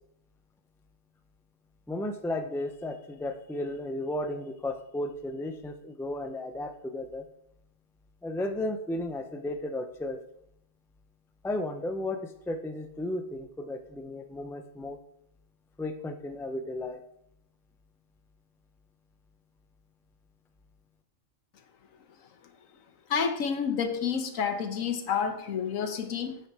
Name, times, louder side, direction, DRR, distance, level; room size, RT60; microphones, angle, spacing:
voice 1, 1.9-7.2 8.2-10.2 11.4-15.0 15.8-17.0, left 1 dB, 5° left, 7 dB, 0.4 m, -34 dB
voice 2, 23.1-26.4, left 6 dB, 75° left, 8 dB, 1.3 m, -29 dB
8.8 x 5.9 x 4.8 m, 0.73 s
omnidirectional pair, 1.4 m